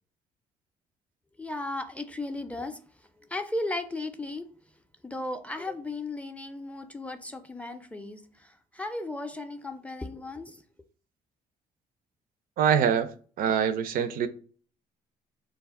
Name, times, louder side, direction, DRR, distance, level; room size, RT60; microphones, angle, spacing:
voice 1, 1.4-4.5 5.0-10.6, left 2 dB, 10° left, 0.4 m, -36 dB
voice 2, 12.6-13.1 13.4-14.3, right 8 dB, 60° right, 0.4 m, -24 dB
2.2 x 2.0 x 3.5 m
supercardioid pair, 65°, 16 cm